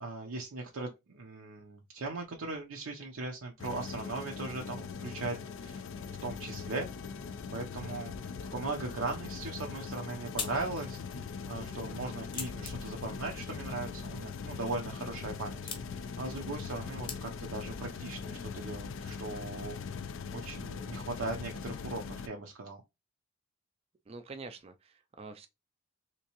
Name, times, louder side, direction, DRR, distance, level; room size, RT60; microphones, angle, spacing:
voice 1, 0.0-5.8 6.2-6.9 7.5-19.8 20.3-22.8, right 3 dB, 80° right, 0.6 m, -39 dB
sound 1, 3.6-22.3, left 5 dB, 65° left, 0.4 m, -41 dB
sound 2, 17.0-17.7, left 5 dB, 25° left, 0.8 m, -46 dB
voice 2, 24.1-25.5, right 3 dB, 30° right, 0.3 m, -46 dB
3.5 x 2.9 x 2.9 m
head